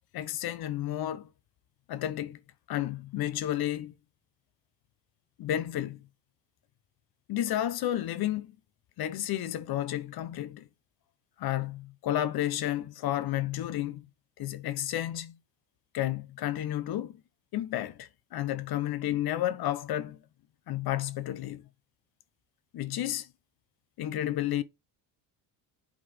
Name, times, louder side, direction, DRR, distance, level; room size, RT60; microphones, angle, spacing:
voice 1, 0.1-1.3 1.9-2.4 2.7-3.9 5.4-6.1 7.3-8.5 9.0-10.7 11.4-14.1 14.4-15.3 15.9-17.2 17.5-20.2 20.7-21.7 22.7-23.3 24.0-24.6, left 12 dB, 60° left, 1.0 m, -31 dB
8.3 x 4.0 x 5.0 m
cardioid pair, 125°, 43 cm